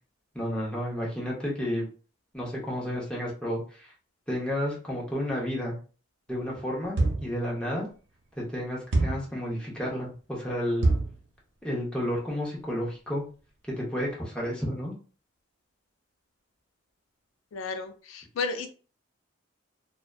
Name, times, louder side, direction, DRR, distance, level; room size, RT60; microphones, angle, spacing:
voice 1, 0.3-1.9 2.3-3.9 4.3-5.8 6.3-7.9 8.4-10.9 11.6-13.3 13.7-14.9, equal, 5° left, -4 dB, 0.6 m, -31 dB
sound 1, 7.0-7.4 8.9-9.3 10.8-11.2, right 2 dB, 65° right, 0.6 m, -25 dB
voice 2, 17.5-18.7, left 4 dB, 80° left, 7 dB, 0.4 m, -33 dB
2.5 x 2.2 x 2.3 m, 0.37 s
head